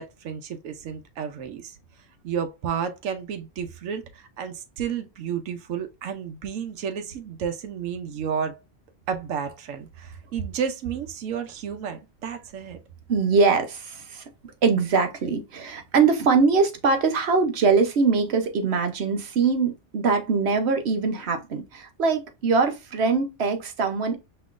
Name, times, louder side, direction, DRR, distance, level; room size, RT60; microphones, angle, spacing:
voice 1, 0.0-1.7 2.2-8.6 9.1-12.8, right 7 dB, 85° right, 1.0 m, -31 dB
voice 2, 13.1-14.2 14.6-24.2, right 4 dB, 60° right, 1.0 m, -22 dB
5.5 x 3.0 x 2.4 m
omnidirectional pair, 1.3 m